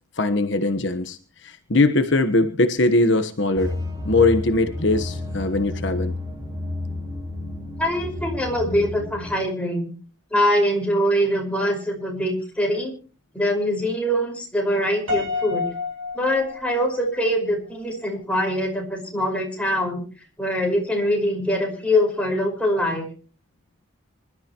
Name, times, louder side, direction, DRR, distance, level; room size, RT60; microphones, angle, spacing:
voice 1, 0.2-3.7 4.0-6.1, left 2 dB, 60° left, 8 dB, 1.3 m, -21 dB
sound 1, 3.6-9.4, left 2 dB, 20° right, 5.2 m, -31 dB
voice 2, 7.8-9.9 10.3-12.9 13.3-15.7 16.1-20.0 20.4-23.0, equal, 5° left, 0 dB, 5.3 m, -23 dB
Piano, 15.1-17.3, left 4 dB, 90° right, 6.6 m, -29 dB
26.0 x 13.0 x 3.1 m, 0.36 s
head